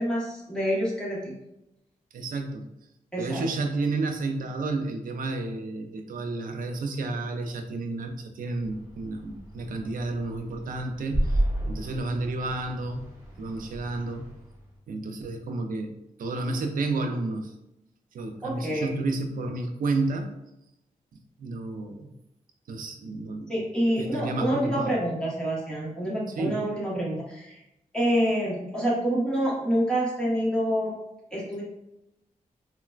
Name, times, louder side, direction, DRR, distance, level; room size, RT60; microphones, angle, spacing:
voice 1, 0.0-1.4 3.1-3.4 18.4-18.9 23.5-27.6 27.9-30.9 31.3-31.6, equal, 5° left, -6 dB, 1.1 m, -27 dB
voice 2, 2.1-2.7 3.2-13.1 13.4-14.3 14.9-15.9 16.2-17.5 18.1-20.3 21.4-22.1 22.7-23.6 24.0-25.0 26.4-26.7, right 2 dB, 80° right, 5 dB, 0.4 m, -31 dB
sound 1, 8.6-14.8, right 1 dB, 15° right, 1.2 m, -33 dB
3.8 x 2.1 x 2.3 m, 0.87 s
wide cardioid pair, 115°, 14 cm